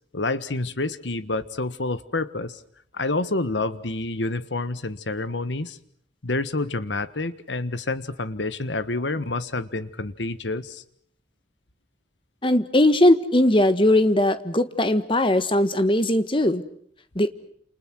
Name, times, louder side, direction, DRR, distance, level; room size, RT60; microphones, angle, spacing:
voice 1, 0.1-2.6 2.9-5.8 6.2-10.8, left 2 dB, 80° left, 14 dB, 1.5 m, -28 dB
voice 2, 12.4-16.6 17.1-17.3, left 1 dB, 30° left, 11 dB, 1.5 m, -19 dB
29.5 x 28.5 x 6.3 m, 0.66 s
head